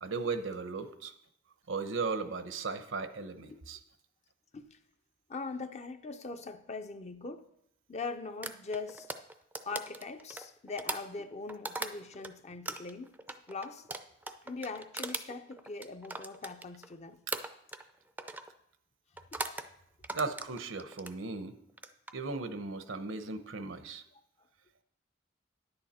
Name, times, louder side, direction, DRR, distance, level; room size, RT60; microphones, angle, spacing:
voice 1, 0.0-1.1 1.7-3.8 20.1-21.5 22.1-24.0, right 4 dB, 80° right, 0.8 m, -36 dB
voice 2, 5.3-7.5 7.9-9.1 9.6-13.9 14.4-17.2 24.1-24.2, left 4 dB, 35° left, 0.6 m, -41 dB
sound 1, 8.4-12.3 12.7-16.9 17.3-17.9 18.2-18.5 19.2-19.7 20.0-21.2 21.7-22.1, right 2 dB, 10° right, 0.5 m, -40 dB
10.5 x 8.8 x 4.3 m
head